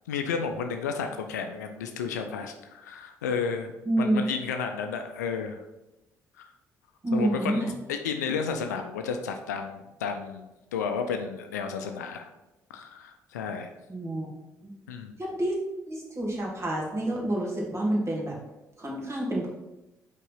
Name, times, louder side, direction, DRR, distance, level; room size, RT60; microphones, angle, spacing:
voice 1, 0.1-5.6 6.4-6.5 7.1-12.3 12.7-13.7 14.9-15.1, left 6 dB, 80° left, 6 dB, 0.5 m, -32 dB
voice 2, 3.9-4.2 7.0-7.7 13.9-14.3 14.6-14.7 15.2-15.6 15.9-18.4 18.8-19.5, right 1 dB, 30° right, -2 dB, 2.3 m, -28 dB
5.4 x 3.8 x 5.5 m, 0.98 s
figure-of-eight pair, 45°, 9 cm